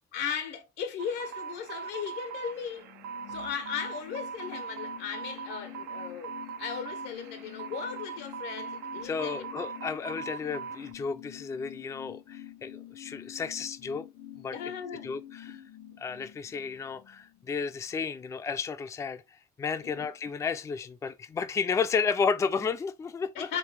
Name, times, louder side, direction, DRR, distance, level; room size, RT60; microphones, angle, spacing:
voice 1, 0.1-2.9 3.3-9.5 14.5-15.2 15.5-15.6 19.8-20.1 23.3-23.6, left 7 dB, 85° left, 0.9 m, -37 dB
sound 1, 1.0-10.9, right 6 dB, 80° right, 0.4 m, -41 dB
sound 2, 2.5-17.7 18.0-18.1, left 12 dB, 60° left, 0.6 m, -47 dB
voice 2, 9.0-14.1 14.4-14.6 15.0-15.6 16.0-23.5, left 5 dB, 20° left, 0.3 m, -32 dB
3.2 x 3.2 x 3.2 m
cardioid pair, 110°, 17 cm